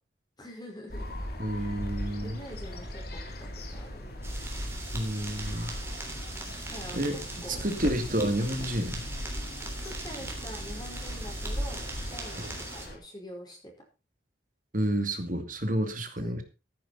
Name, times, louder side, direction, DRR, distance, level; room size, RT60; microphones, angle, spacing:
voice 1, 0.4-1.1 1.5-1.8 2.2-4.0 6.7-8.1 9.8-13.7 16.2-16.4, equal, 20° left, 0 dB, 5.0 m, -45 dB
sound 1, 0.9-13.0, equal, 55° left, 3.4 m, -38 dB
voice 2, 1.4-2.4 4.9-5.7 6.9-9.0 12.4-12.5 14.7-16.4, right 1 dB, 45° right, 7 dB, 2.5 m, -30 dB
sound 2, 4.2-12.9, right 2 dB, 15° right, 3.3 m, -41 dB
14.0 x 10.0 x 4.3 m, 0.31 s
head